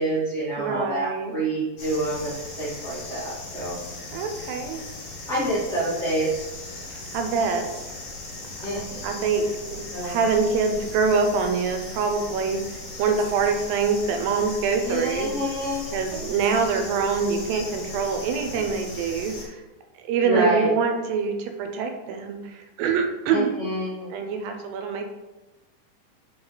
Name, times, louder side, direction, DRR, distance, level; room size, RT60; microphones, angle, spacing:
voice 1, 0.0-3.8 5.3-6.4 8.6-9.0 9.9-10.1 14.8-16.0 20.2-20.7 23.3-24.1, right 1 dB, 35° right, -9 dB, 1.0 m, -27 dB
voice 2, 0.6-1.4 4.1-4.8 6.9-7.7 9.0-15.3 15.9-19.6 20.0-23.5 24.1-25.1, right 5 dB, 85° right, 5 dB, 2.5 m, -25 dB
sound 1, 1.8-19.5, left 2 dB, 55° left, 2.1 m, -38 dB
5.4 x 5.2 x 4.0 m, 1.1 s
omnidirectional pair, 4.0 m